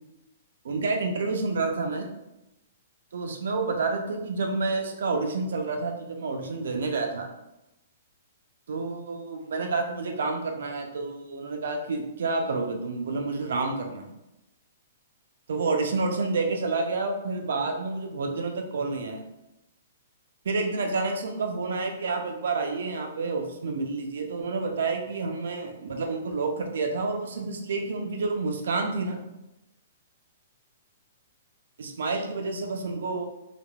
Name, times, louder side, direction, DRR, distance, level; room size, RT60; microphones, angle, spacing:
voice 1, 0.6-2.1 3.1-7.3 8.7-14.1 15.5-19.3 20.4-29.2 31.8-33.2, right 3 dB, 70° right, 3 dB, 0.5 m, -29 dB
3.3 x 2.1 x 2.3 m, 0.91 s
hypercardioid pair, 175°, 0 cm